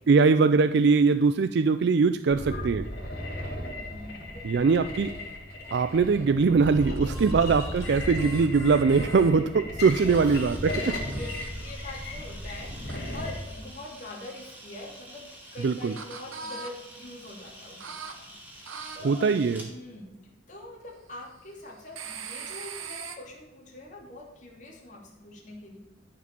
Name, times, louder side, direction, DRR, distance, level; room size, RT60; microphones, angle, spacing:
voice 1, 0.1-2.9 4.4-5.1 5.7-10.9 15.6-15.9 19.0-19.6, right 4 dB, 55° right, 10 dB, 0.4 m, -22 dB
sound 1, 2.3-13.3, left 1 dB, 55° left, 2.9 m, -35 dB
voice 2, 3.6-4.7 10.0-19.4 19.6-20.1 20.5-25.8, left 2 dB, 40° left, -2 dB, 2.6 m, -44 dB
sound 2, 4.9-6.3 6.8-9.3 9.9-11.5 12.9-14.6 15.3-16.7 17.8-18.2 18.7-19.0 21.9-23.2, right 5 dB, 90° right, 1.2 m, -43 dB
Camera, 9.8-19.7, right 1 dB, 10° right, 2.4 m, -48 dB
13.5 x 5.0 x 6.8 m, 1.0 s
head